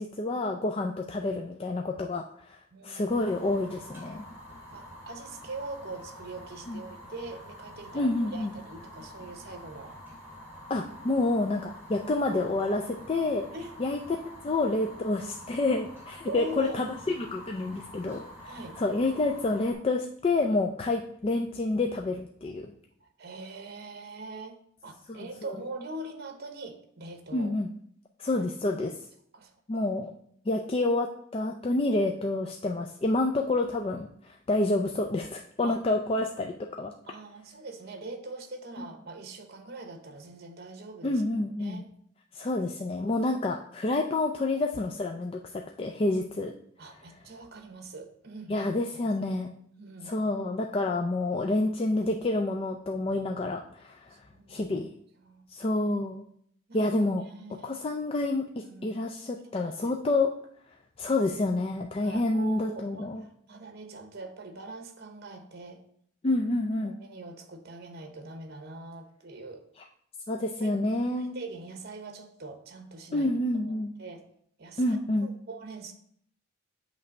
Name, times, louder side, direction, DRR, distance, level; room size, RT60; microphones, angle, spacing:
voice 1, 0.0-2.6 2.8-4.2 6.7-6.8 7.9-8.5 10.7-13.4 13.8-14.0 14.4-22.7 25.1-25.2 27.3-27.7 28.2-28.9 29.7-30.1 30.5-36.9 38.8-38.9 41.0-41.8 42.3-46.5 48.5-49.5 50.1-54.1 54.5-54.9 55.5-56.2 56.7-57.2 57.6-60.3 61.0-63.2 66.2-66.9 70.3-71.4 73.1-73.9 74.8-75.3, left 2 dB, 30° left, 3 dB, 0.4 m, -28 dB
voice 2, 2.7-3.2 4.7-10.0 13.5-13.8 16.3-16.9 18.4-18.8 23.0-27.5 28.3-28.5 29.3-29.9 35.6-35.8 37.1-41.2 41.6-41.9 42.9-43.1 46.8-48.7 49.2-49.3 49.8-50.1 54.1-54.7 55.2-55.4 56.7-56.9 57.2-57.7 58.5-59.0 59.5-60.0 62.0-65.8 66.8-69.7 70.6-70.8 71.2-73.3 74.0-74.2 74.6-75.9, right 2 dB, 55° right, 5 dB, 0.9 m, -43 dB
Fire, 3.1-19.7, left 1 dB, 10° right, 2.4 m, -47 dB
8.2 x 3.3 x 5.2 m, 0.66 s
head